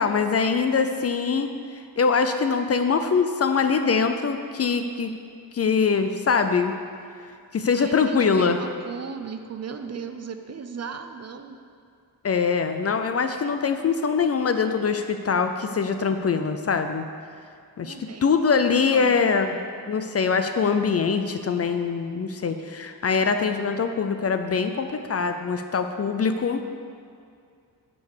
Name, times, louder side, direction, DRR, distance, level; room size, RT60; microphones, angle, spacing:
voice 1, 0.0-5.1 5.5-6.7 7.5-8.6 12.2-17.1 17.8-19.6 19.9-26.6, left 5 dB, 40° left, 7 dB, 0.5 m, -23 dB
voice 2, 7.7-11.6 17.8-18.4 18.9-19.3, right 6 dB, 40° right, 7 dB, 0.5 m, -36 dB
9.4 x 5.3 x 6.7 m, 2.3 s
wide cardioid pair, 150°, 40 cm